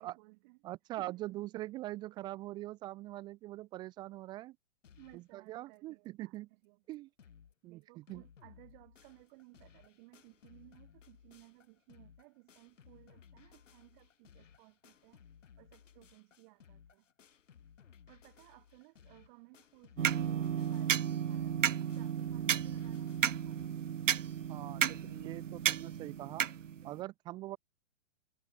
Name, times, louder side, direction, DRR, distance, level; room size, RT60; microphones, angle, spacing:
voice 1, 0.0-0.6 1.0-1.2 5.0-6.8 7.6-15.2 15.6-17.1 18.1-23.9, right 27 dB, 40° right, 3.9 m, -60 dB
voice 2, 0.6-4.6 5.1-6.5 6.9-7.1 7.6-8.2 24.5-26.4 26.8-27.6, right 16 dB, 10° right, 0.4 m, -43 dB
sound 1, 4.8-5.3 5.7-5.8 6.0-6.1 6.6-6.7 6.9-7.5 7.8-23.7, left 7 dB, 80° left, 5.0 m, -60 dB
sound 2, 20.0-27.0, right 9 dB, 85° right, 1.4 m, -33 dB
hypercardioid pair, 135°, 37 cm